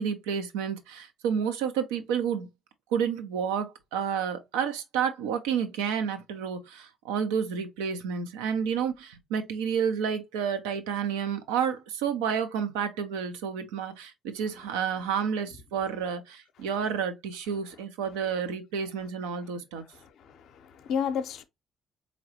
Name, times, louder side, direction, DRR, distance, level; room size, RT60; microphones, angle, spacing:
voice 1, 0.0-2.5 2.9-19.8, right 7 dB, 85° right, 0.6 m, -30 dB
voice 2, 20.0-21.4, left 7 dB, 70° left, 0.5 m, -32 dB
3.9 x 3.0 x 2.8 m
hypercardioid pair, 55°, 0 cm